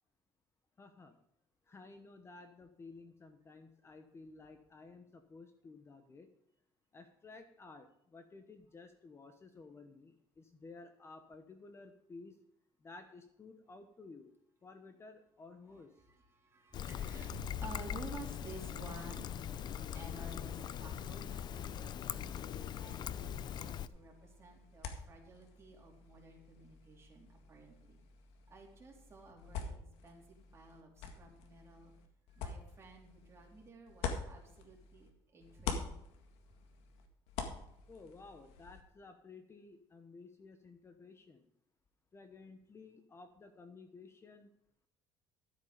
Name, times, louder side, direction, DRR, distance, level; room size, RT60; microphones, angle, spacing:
voice 1, 0.8-1.2 1.7-6.3 6.9-12.4 12.8-14.3 14.6-15.9 37.9-41.4 42.1-44.5, left 3 dB, 25° left, 7 dB, 1.1 m, -54 dB
voice 2, 15.7-19.2 19.9-22.3 22.8-28.0 28.5-31.9 32.3-35.9, right 2 dB, 25° right, -1 dB, 3.6 m, -53 dB
Trickle dribble, 16.7-23.9, left 9 dB, 45° left, 0.6 m, -41 dB
sound 1, 23.9-35.1 35.4-38.8, left 6 dB, 85° left, 1.9 m, -46 dB
13.0 x 8.3 x 5.1 m, 0.76 s
cardioid pair, 125°, 10 cm